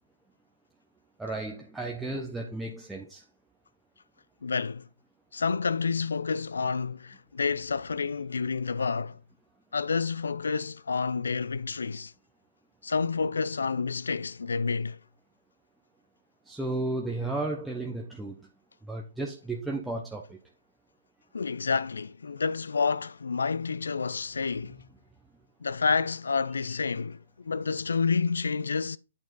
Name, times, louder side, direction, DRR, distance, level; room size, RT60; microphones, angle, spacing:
voice 1, 1.2-3.2 16.5-18.4 18.9-20.4, right 2 dB, 5° right, 0.7 m, -33 dB
voice 2, 4.4-4.9 5.3-9.2 9.7-12.1 12.8-15.0 21.3-24.8 25.6-29.0, left 5 dB, 80° left, 0.5 m, -29 dB
8.6 x 4.4 x 3.9 m
hypercardioid pair, 140°, 0 cm